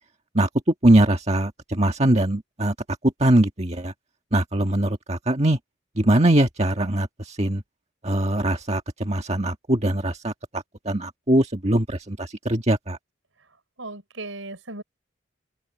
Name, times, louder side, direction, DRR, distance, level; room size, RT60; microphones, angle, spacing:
voice 1, 0.8-2.7 3.2-3.9 4.3-5.6 6.0-7.6 8.0-13.0, right 1 dB, 30° right, 1.7 m, -22 dB
voice 2, 13.8-14.8, right 2 dB, 75° right, 5.4 m, -36 dB
open air
head